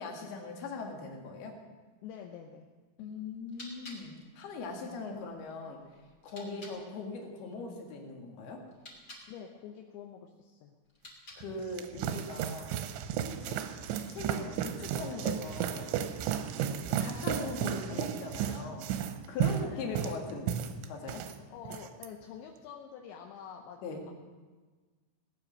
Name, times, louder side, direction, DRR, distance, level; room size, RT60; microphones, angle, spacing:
voice 1, 0.0-1.6 3.0-5.8 6.2-8.6 11.4-12.7 13.2-13.7 14.0-15.9 17.0-18.9 19.3-20.6 20.9-21.3 23.8-24.0, left 3 dB, 60° left, 1 dB, 3.6 m, -40 dB
voice 2, 2.0-2.7 9.3-10.8 16.6-16.9 19.5-20.3 21.5-23.8, left 8 dB, 80° left, 2 dB, 3.1 m, -47 dB
sound 1, 3.3-6.8 8.6-9.3 10.8-11.7, left 1 dB, 25° left, 2.5 m, -52 dB
sound 2, 11.4-21.4 21.7-22.1, right 9 dB, 85° right, 3.0 m, -34 dB
18.0 x 9.7 x 6.4 m, 1.3 s
omnidirectional pair, 5.5 m